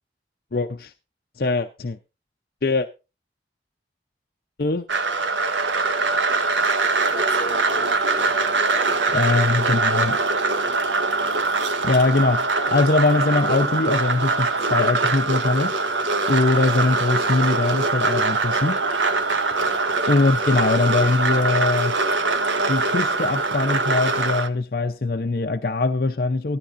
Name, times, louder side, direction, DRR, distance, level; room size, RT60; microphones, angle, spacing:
voice 1, 0.5-0.9 1.4-2.0 2.6-2.9 4.6-4.8 9.1-10.2 11.8-15.8 16.3-18.8 20.1-22.0 22.7-26.6, left 3 dB, 55° left, 0.6 m, -22 dB
sound 1, 4.9-24.5, right 3 dB, 90° right, 1.1 m, -22 dB
voice 2, 7.0-9.0 19.2-19.3, left 2 dB, 15° left, 4.7 m, -38 dB
15.5 x 13.0 x 2.5 m
head